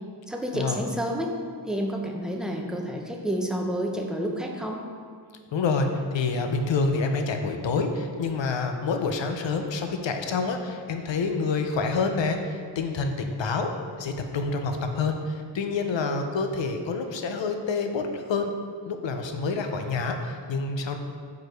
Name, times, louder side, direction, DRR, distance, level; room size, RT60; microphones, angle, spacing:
voice 1, 0.3-1.4 1.7-4.8, equal, ahead, 1 dB, 0.5 m, -29 dB
voice 2, 5.5-13.7 14.0-18.5 18.8-21.0, left 4 dB, 75° left, 5 dB, 0.6 m, -27 dB
4.8 x 4.7 x 4.5 m, 2.1 s
wide cardioid pair, 130°, 45 cm